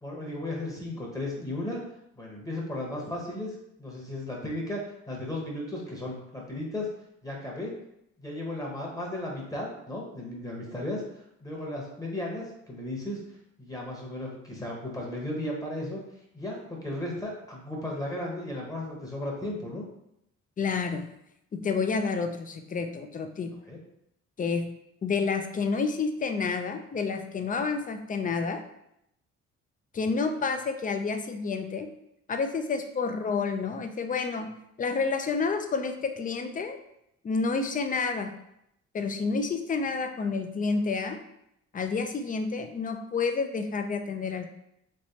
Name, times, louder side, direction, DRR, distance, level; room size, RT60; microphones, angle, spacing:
voice 1, 0.0-1.8 2.2-6.9 7.2-7.7 8.2-11.1 11.4-13.2 13.6-16.0 16.3-19.8 23.7-23.8, left 1 dB, 10° left, -2 dB, 1.0 m, -35 dB
voice 2, 20.6-21.1 21.5-23.5 24.4-24.7 25.0-28.6 29.9-31.9 32.3-34.5 34.8-36.8 37.2-38.3 38.9-41.2 41.7-44.5, left 4 dB, 30° left, 7 dB, 0.4 m, -29 dB
3.3 x 3.0 x 2.8 m, 0.78 s
cardioid pair, 90°, 30 cm